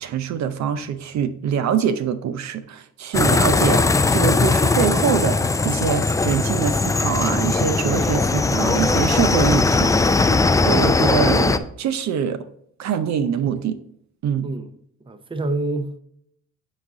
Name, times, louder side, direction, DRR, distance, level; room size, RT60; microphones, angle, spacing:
voice 1, 0.0-9.9 10.6-12.4 12.8-13.8 14.2-14.5, right 7 dB, 65° right, 0.6 m, -24 dB
sound 1, 3.1-11.6, left 3 dB, 10° left, 0.3 m, -19 dB
voice 2, 15.0-16.0, right 2 dB, 15° right, 0.7 m, -27 dB
9.0 x 4.0 x 3.6 m
cardioid pair, 90°, 30 cm